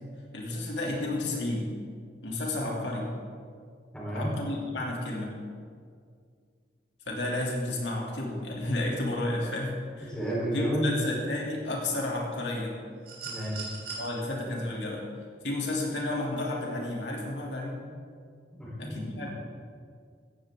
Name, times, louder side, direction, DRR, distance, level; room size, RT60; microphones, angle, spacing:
voice 1, 0.3-1.7 2.2-3.1 4.1-5.4 7.1-10.2 10.5-12.8 14.0-15.0 15.4-17.8 18.8-19.3, left 2 dB, 90° left, -2 dB, 2.9 m, -32 dB
voice 2, 3.9-4.4 10.1-11.0 13.2-13.7 18.6-19.3, equal, 5° left, -6 dB, 4.0 m, -31 dB
sound 1, 13.0-14.1 15.6-15.7, right 4 dB, 60° right, 3.8 m, -40 dB
16.0 x 14.5 x 3.8 m, 2.1 s
head